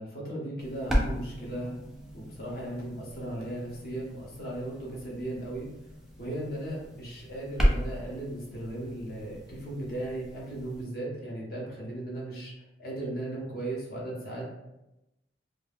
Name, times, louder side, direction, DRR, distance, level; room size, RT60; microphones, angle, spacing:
voice 1, 0.0-1.8 2.1-5.7 6.2-12.5 12.8-14.6, right 1 dB, 55° left, -4 dB, 0.8 m, -36 dB
sound 1, 0.6-10.8, equal, ahead, 0.4 m, -34 dB
2.3 x 2.2 x 3.4 m, 0.92 s
head